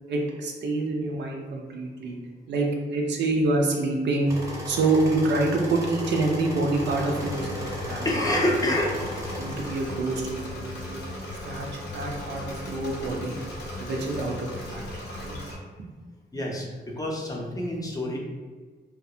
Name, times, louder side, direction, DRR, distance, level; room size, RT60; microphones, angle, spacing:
voice 1, 0.1-2.2 2.5-4.3 4.7-8.1 9.4-11.0 11.4-11.7 11.9-13.4 13.8-14.9 15.2-15.4 15.8-15.9 16.3-16.4, right 2 dB, 90° right, 0 dB, 0.5 m, -27 dB
sound 1, 4.3-9.9, left 1 dB, 20° right, 0.6 m, -35 dB
Engine / Mechanisms, 6.7-15.5, left 1 dB, 85° left, 0.7 m, -37 dB
voice 2, 8.0-9.4 16.3-18.2, left 1 dB, 20° left, -1 dB, 0.5 m, -28 dB
2.4 x 2.2 x 2.7 m, 1.4 s
cardioid pair, 85°, 18 cm